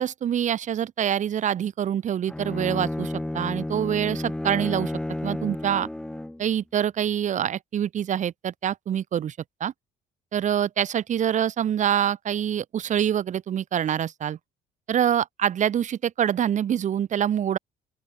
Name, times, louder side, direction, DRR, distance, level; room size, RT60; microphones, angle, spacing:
voice 1, 0.0-4.9 5.2-5.9 6.4-9.7 10.3-14.4 14.9-17.6, right 9 dB, 45° right, 1.0 m, -25 dB
Bowed string instrument, 2.3-6.5, left 1 dB, 5° left, 0.6 m, -31 dB
open air
cardioid pair, 110°, 17 cm